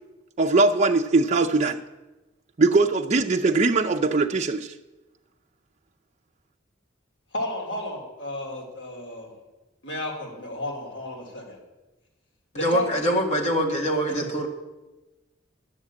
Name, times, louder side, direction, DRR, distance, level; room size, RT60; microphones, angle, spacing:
voice 1, 0.4-1.8 2.6-4.7, right 3 dB, 35° right, 0.5 m, -21 dB
voice 2, 7.3-9.3 9.8-11.6 12.5-13.0 14.1-14.2, left 1 dB, 65° left, 3.2 m, -32 dB
voice 3, 12.5-14.5, equal, 35° left, 2.0 m, -24 dB
10.5 x 7.2 x 8.6 m
head